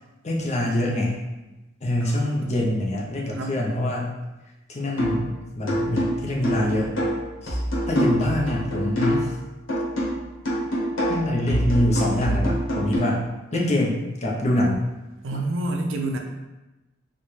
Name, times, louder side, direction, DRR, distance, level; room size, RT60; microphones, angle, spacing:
voice 1, 0.2-1.2 1.8-4.1 4.7-7.0 7.4-9.3 11.1-14.9, left 1 dB, 35° left, -2 dB, 0.6 m, -25 dB
voice 2, 2.0-2.6 3.3-3.6 15.2-16.2, right 2 dB, 70° right, 2 dB, 0.5 m, -29 dB
sound 1, 5.0-5.3 5.7-9.4 9.7-13.0, equal, 70° left, 1.0 m, -25 dB
4.2 x 2.2 x 3.1 m, 1.1 s
head